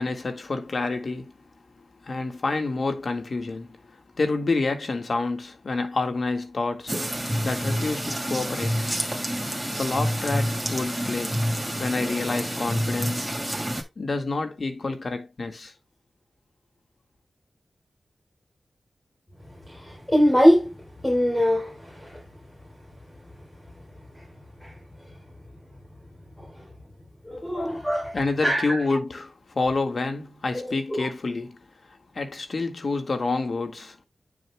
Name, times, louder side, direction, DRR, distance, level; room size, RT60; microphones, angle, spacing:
voice 1, 0.0-1.3 1.8-8.9 9.8-11.4 11.8-13.3 14.0-15.7 27.5-27.8 28.1-31.6 31.9-34.0, left 3 dB, 60° left, 1.8 m, -28 dB
sound 1, 6.9-13.8, equal, 5° right, 2.7 m, -28 dB
voice 2, 19.7-20.7 21.0-21.7 22.1-22.2 24.6-24.7 26.4-26.5 27.3-28.2 28.4-28.8 30.5-30.6 30.9-31.1, equal, 15° left, 3.6 m, -22 dB
9.3 x 6.5 x 2.3 m
cardioid pair, 60°, 0 cm